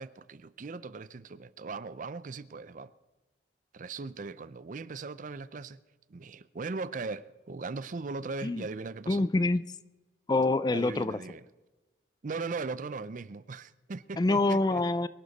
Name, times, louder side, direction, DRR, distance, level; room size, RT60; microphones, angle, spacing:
voice 1, 0.0-2.9 3.7-5.8 6.1-9.3 10.7-11.4 12.2-14.8, right 4 dB, 50° right, 0.5 m, -39 dB
voice 2, 9.1-9.6 10.3-11.2 14.2-15.1, left 2 dB, 25° left, 0.4 m, -26 dB
23.0 x 11.5 x 4.1 m
head